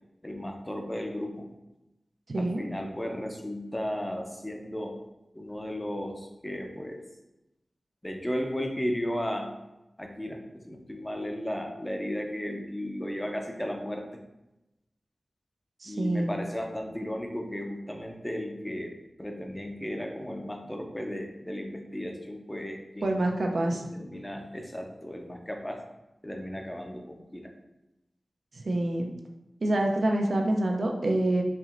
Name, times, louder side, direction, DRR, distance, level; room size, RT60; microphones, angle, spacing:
voice 1, 0.2-1.5 2.4-5.0 5.3-7.1 8.0-9.5 10.0-14.1 15.8-23.2 23.7-25.8 26.2-27.5, equal, 15° left, 3 dB, 0.6 m, -35 dB
voice 2, 2.3-2.7 15.8-16.3 23.0-23.8 28.6-29.1 29.6-31.4, right 1 dB, 75° right, 2 dB, 0.5 m, -26 dB
4.4 x 3.0 x 2.5 m, 0.95 s
cardioid pair, 50°, 0 cm